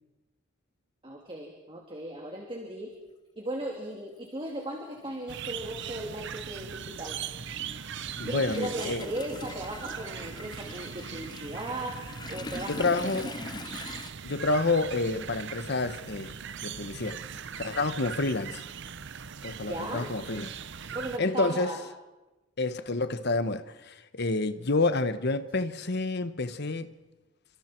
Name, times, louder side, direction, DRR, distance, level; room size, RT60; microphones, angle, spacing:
voice 1, 1.0-2.9 3.4-7.2 8.3-12.0 12.3-12.8 13.2-13.3 19.6-20.1 20.9-21.8, right 1 dB, 25° right, 3.0 m, -37 dB
Toilet flush, 3.6-3.7 5.0-5.1 5.5-14.1, left 3 dB, 20° left, 0.7 m, -43 dB
sound 1, 5.3-21.2, right 7 dB, 60° right, 0.8 m, -40 dB
voice 2, 8.2-9.0 12.7-13.3 14.2-16.3 16.6-17.2 17.6-18.6 19.4-20.5 21.2-21.8 22.6-26.9, left 3 dB, 55° left, 1.2 m, -29 dB
29.5 x 26.0 x 4.6 m
head